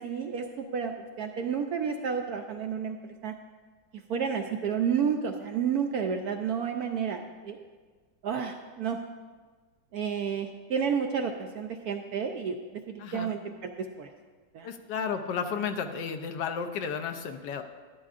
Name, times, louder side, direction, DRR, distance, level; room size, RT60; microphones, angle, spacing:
voice 1, 0.0-3.0 3.2-3.3 3.9-7.7 8.2-9.0 9.9-14.1 14.5-14.7, right 7 dB, 75° right, 5 dB, 0.9 m, -31 dB
voice 2, 13.0-13.3 14.6-17.6, left 6 dB, 75° left, 7 dB, 1.2 m, -33 dB
12.0 x 11.5 x 2.5 m, 1.5 s
omnidirectional pair, 2.0 m